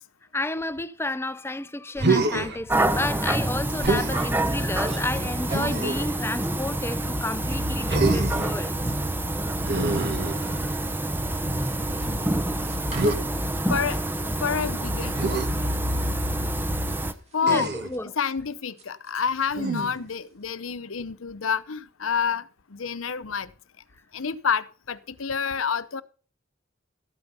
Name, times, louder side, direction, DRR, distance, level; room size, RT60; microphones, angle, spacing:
voice 1, 0.3-8.7 17.4-18.1, left 2 dB, 10° left, 0.6 m, -31 dB
Human voice, 1.9-2.6 3.8-4.2 5.5-6.1 7.9-8.5 9.6-10.9 12.9-13.2 15.1-15.5 17.4-18.0 19.5-20.1, right 3 dB, 55° right, 1.5 m, -26 dB
sound 1, 2.7-17.1, right 1 dB, 10° right, 0.9 m, -27 dB
sound 2, 3.8-6.0 6.2-6.6 6.9-7.0 7.2-7.6 7.8-10.2 10.4-19.5 19.7-20.2 20.4-20.5, right 2 dB, 35° right, 3.6 m, -44 dB
voice 2, 13.7-15.2 17.3-17.7 18.0-23.5 24.1-26.0, left 6 dB, 85° left, 0.8 m, -28 dB
13.5 x 8.9 x 5.6 m
head